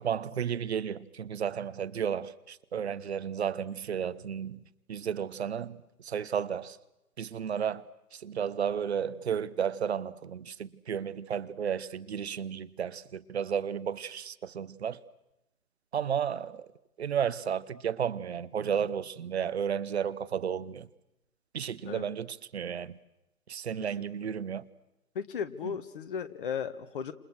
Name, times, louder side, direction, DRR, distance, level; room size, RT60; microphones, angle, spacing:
voice 1, 0.0-4.6 4.9-6.8 7.2-15.0 15.9-16.7 17.0-20.9 21.5-23.0 23.5-24.7 25.6-25.7, right 8 dB, 45° right, 1.0 m, -33 dB
voice 2, 25.1-27.1, left 7 dB, 35° left, 1.5 m, -35 dB
29.5 x 28.0 x 6.4 m
figure-of-eight pair, 140°, 47 cm